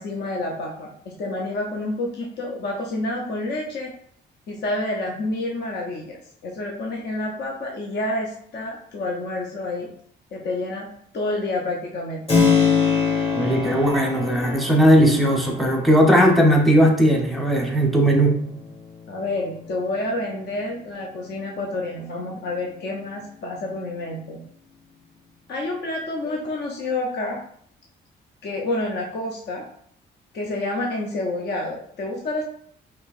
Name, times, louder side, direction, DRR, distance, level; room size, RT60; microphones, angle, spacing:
voice 1, 0.0-3.9 4.5-6.2 6.4-9.9 10.3-10.9 11.1-12.2 19.1-24.4 25.5-27.4 28.4-29.6 30.3-32.4, left 2 dB, 55° left, -1 dB, 0.7 m, -28 dB
Keyboard (musical), 12.3-20.8, left 5 dB, 30° left, 1.6 m, -26 dB
voice 2, 13.3-18.4, equal, ahead, 1 dB, 0.9 m, -17 dB
4.4 x 3.0 x 2.5 m, 0.63 s
cardioid pair, 90°, 20 cm